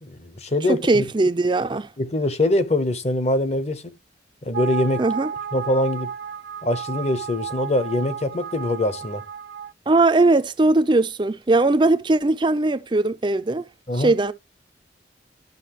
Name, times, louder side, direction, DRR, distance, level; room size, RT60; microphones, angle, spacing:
voice 1, 0.0-1.0 2.0-4.0 4.4-5.0 5.5-6.1 6.6-9.2 13.9-14.1, left 1 dB, 35° left, 0.9 m, -23 dB
voice 2, 0.8-1.9 5.0-5.3 9.9-13.6 14.0-14.3, right 2 dB, 25° right, 0.5 m, -19 dB
sound 1, 4.5-9.7, right 7 dB, 75° right, 0.6 m, -32 dB
12.0 x 6.3 x 3.0 m
head